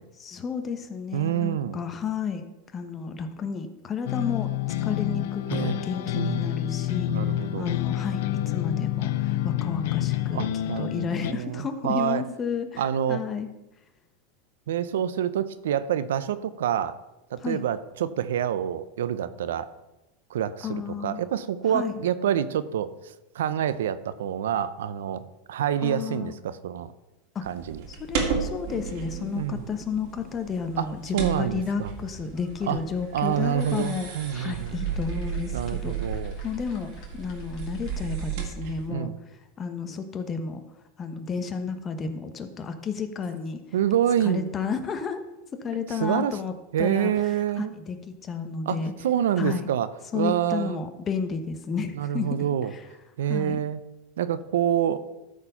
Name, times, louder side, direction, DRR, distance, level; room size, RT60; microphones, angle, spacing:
voice 1, 0.2-2.4 2.7-4.5 4.8-7.1 7.6-8.2 8.5-10.4 10.8-12.8 13.1-13.5 17.4-17.6 20.6-21.2 21.7-22.0 25.8-26.3 27.3-27.4 27.9-39.1 39.6-40.6 41.0-43.6 44.2-45.2 45.6-47.1 47.6-48.0 48.2-48.9 49.4-49.7 50.1-52.4 52.7-52.8 53.3-53.6, left 5 dB, 25° left, 8 dB, 1.0 m, -32 dB
voice 2, 1.1-1.8 5.5-5.8 6.1-6.6 7.1-7.7 10.3-12.2 12.8-13.2 14.7-17.0 17.3-19.7 20.3-26.9 27.4-27.8 29.3-29.7 30.8-30.9 31.1-31.9 32.7-32.8 33.1-35.0 35.5-36.4 38.9-39.2 43.7-44.5 45.9-46.4 46.7-47.7 48.7-49.9 50.1-50.8 52.0-52.7 53.2-53.8 54.2-55.0, right 10 dB, 90° right, 14 dB, 0.6 m, -27 dB
sound 1, 4.1-11.3, left 13 dB, 70° left, 0.5 m, -28 dB
sound 2, 27.4-38.9, right 6 dB, 60° right, 2.2 m, -34 dB
sound 3, 30.8-38.5, left 3 dB, 45° left, 2.6 m, -53 dB
13.0 x 4.5 x 5.5 m, 0.97 s
supercardioid pair, 130°, 0 cm